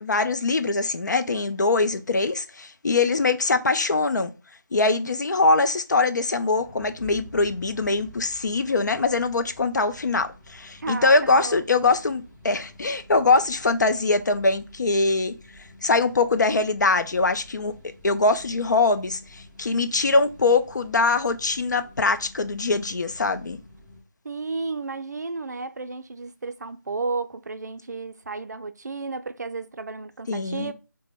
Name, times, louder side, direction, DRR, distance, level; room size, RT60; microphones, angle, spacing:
voice 1, 0.0-4.3 4.7-15.3 15.8-17.7 18.0-23.6 30.3-30.7, left 3 dB, 65° left, 0.4 m, -22 dB
sound 1, 6.3-24.0, left 1 dB, ahead, 0.5 m, -49 dB
voice 2, 10.8-11.6 24.2-30.7, right 3 dB, 60° right, 0.4 m, -33 dB
2.9 x 2.1 x 3.3 m
figure-of-eight pair, 165°, 10 cm